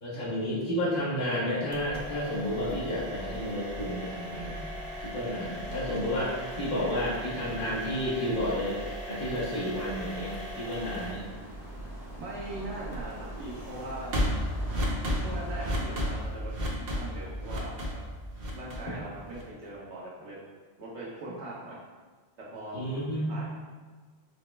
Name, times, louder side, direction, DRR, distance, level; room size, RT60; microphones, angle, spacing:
voice 1, 0.0-4.6 5.1-8.8 9.1-11.3 22.7-23.3, equal, 50° left, -8 dB, 1.3 m, -31 dB
sound 1, 1.7-19.6, equal, 60° right, 0.9 m, -36 dB
sound 2, 10.8-16.2, left 1 dB, 5° right, 0.6 m, -45 dB
voice 2, 12.2-14.1 15.0-17.9 18.5-20.4 20.8-21.8 22.4-22.8 23.3-23.4, right 1 dB, 85° right, -6 dB, 1.4 m, -40 dB
4.9 x 2.1 x 3.3 m, 1.4 s
omnidirectional pair, 1.1 m